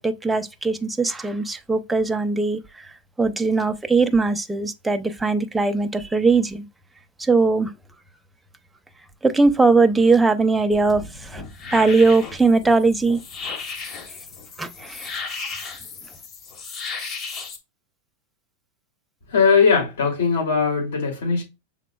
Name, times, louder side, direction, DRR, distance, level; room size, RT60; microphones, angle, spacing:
voice 1, 0.0-2.9 3.2-6.6 7.2-7.7 9.2-11.4 11.7-13.2 14.6-15.1, right 3 dB, 5° right, 0.5 m, -20 dB
sound 1, 10.7-17.6, left 4 dB, 35° left, 1.1 m, -35 dB
voice 2, 19.3-21.4, left 5 dB, 85° left, 2.7 m, -19 dB
6.0 x 3.8 x 2.3 m
supercardioid pair, 125°, 0 cm